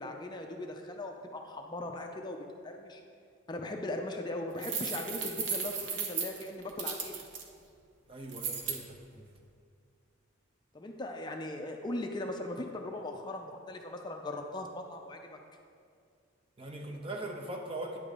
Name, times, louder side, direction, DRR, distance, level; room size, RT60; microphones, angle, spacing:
voice 1, 0.0-2.4 2.6-3.0 3.5-7.2 10.7-15.4, left 2 dB, 20° left, 2 dB, 0.5 m, -39 dB
sound 1, 4.6-7.4 8.3-8.8, right 6 dB, 65° right, 0.9 m, -35 dB
voice 2, 8.1-9.3 16.6-18.0, right 2 dB, 30° right, 1 dB, 0.8 m, -41 dB
9.5 x 3.8 x 6.6 m, 2.3 s
head